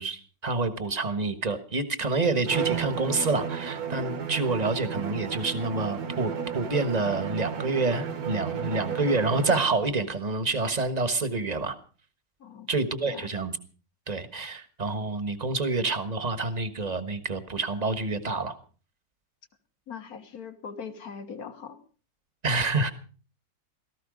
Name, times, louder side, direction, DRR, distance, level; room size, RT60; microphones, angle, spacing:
voice 1, 0.0-11.8 12.7-13.6 14.1-18.6 22.4-22.9, right 3 dB, 25° right, 12 dB, 1.3 m, -28 dB
Bowed string instrument, 2.4-9.9, right 7 dB, 60° right, 1.6 m, -33 dB
voice 2, 12.4-12.7 13.1-13.3 19.9-21.8, left 6 dB, 55° left, 9 dB, 1.9 m, -40 dB
17.5 x 14.5 x 5.2 m, 0.39 s
omnidirectional pair, 1.9 m